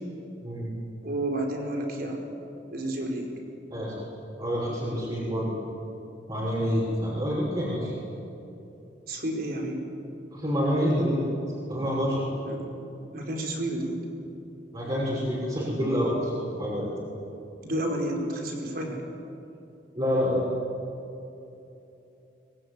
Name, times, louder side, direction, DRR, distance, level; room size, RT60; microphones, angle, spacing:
voice 1, 1.0-2.2 2.7-3.3 9.1-9.8 12.4-12.6 13.1-14.0 17.6-19.0, right 1 dB, 50° right, 1 dB, 4.8 m, -30 dB
voice 2, 4.4-5.5 6.3-7.9 10.3-11.2 11.7-12.2 14.7-16.9 19.9-20.4, equal, 25° right, -7 dB, 6.1 m, -27 dB
24.0 x 23.0 x 9.8 m, 2.9 s
head